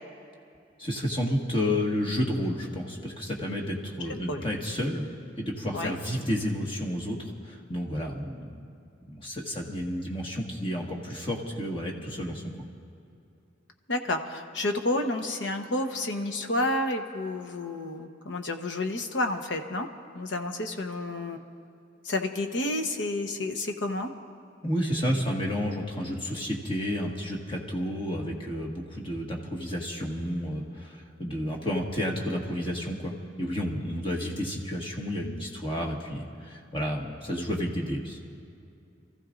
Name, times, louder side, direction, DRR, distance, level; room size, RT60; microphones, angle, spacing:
voice 1, 0.8-5.0 5.4-8.6 9.1-12.4 24.6-38.2, equal, 30° left, -1 dB, 1.6 m, -31 dB
voice 2, 13.9-19.9 20.1-21.4 22.0-24.1, left 2 dB, 85° left, 5 dB, 1.0 m, -30 dB
28.0 x 14.5 x 2.6 m, 2.6 s
head